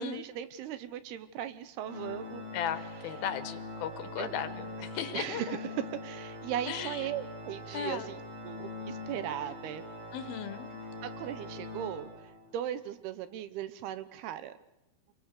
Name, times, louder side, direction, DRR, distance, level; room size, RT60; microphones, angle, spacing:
voice 1, 0.0-2.4 4.2-4.4 4.8-4.9 5.1-9.8 11.0-14.5, right 11 dB, 80° right, 13 dB, 3.1 m, -38 dB
Organ, 1.8-12.6, left 1 dB, 50° right, 6.6 m, -43 dB
voice 2, 2.5-5.6 6.7-7.0 7.7-8.1 10.1-10.7, left 9 dB, 75° left, 12 dB, 2.9 m, -36 dB
26.5 x 22.5 x 6.7 m, 0.89 s
omnidirectional pair, 4.5 m